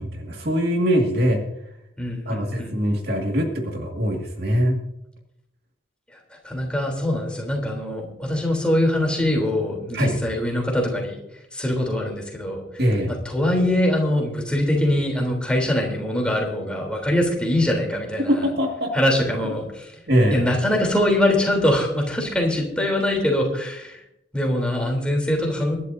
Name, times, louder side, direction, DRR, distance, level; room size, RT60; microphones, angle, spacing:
voice 1, 0.0-1.4 2.3-4.8 9.9-10.2 12.8-13.2 18.3-18.9 20.1-20.5, equal, 55° right, 1 dB, 2.1 m, -22 dB
voice 2, 2.0-2.8 6.4-11.2 11.5-12.6 13.3-18.4 18.9-19.9 20.3-24.0 24.3-25.8, left 1 dB, 5° left, 0 dB, 3.5 m, -23 dB
24.0 x 11.5 x 2.7 m, 0.82 s
head